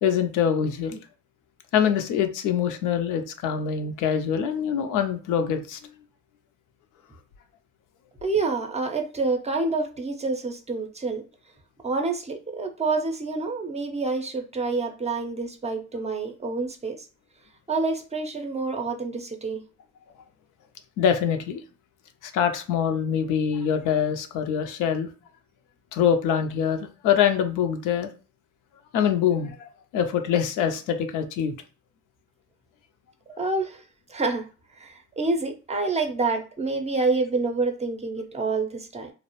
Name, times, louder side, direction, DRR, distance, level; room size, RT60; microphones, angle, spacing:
voice 1, 0.0-1.0 1.7-5.8 21.0-21.6 22.2-25.1 25.9-28.1 28.9-31.5, left 8 dB, 90° left, 7 dB, 0.5 m, -24 dB
voice 2, 8.2-11.2 11.8-17.0 17.7-19.6 33.4-33.8 34.1-34.5 34.7-39.1, right 3 dB, 20° right, 4 dB, 0.5 m, -27 dB
2.4 x 2.0 x 2.9 m, 0.35 s
cardioid pair, 90°, 30 cm